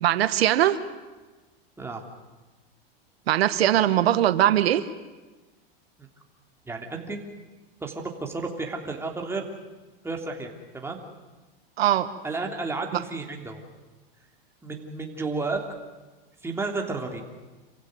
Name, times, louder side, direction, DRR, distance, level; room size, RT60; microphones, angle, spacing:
voice 1, 0.0-0.8 3.3-4.8 11.8-12.1, right 12 dB, 90° right, 12 dB, 1.3 m, -21 dB
voice 2, 6.7-7.2 7.8-9.5 10.0-11.0 12.2-13.6 14.6-15.6 16.4-17.2, right 3 dB, 10° right, 2 dB, 3.0 m, -32 dB
27.5 x 15.5 x 9.5 m, 1.2 s
supercardioid pair, 135°, 30 cm